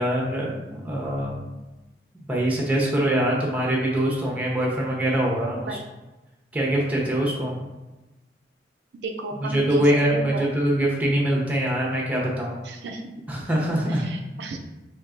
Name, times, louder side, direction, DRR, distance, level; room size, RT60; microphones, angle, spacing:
voice 1, 0.0-1.5 2.3-5.8 6.5-7.6 9.4-12.6 13.3-14.1, right 1 dB, 10° right, -3 dB, 0.7 m, -23 dB
voice 2, 9.0-9.8 10.1-10.4 12.6-13.0 14.0-14.6, right 3 dB, 75° right, 3 dB, 0.4 m, -33 dB
4.4 x 2.7 x 2.5 m, 1.1 s
head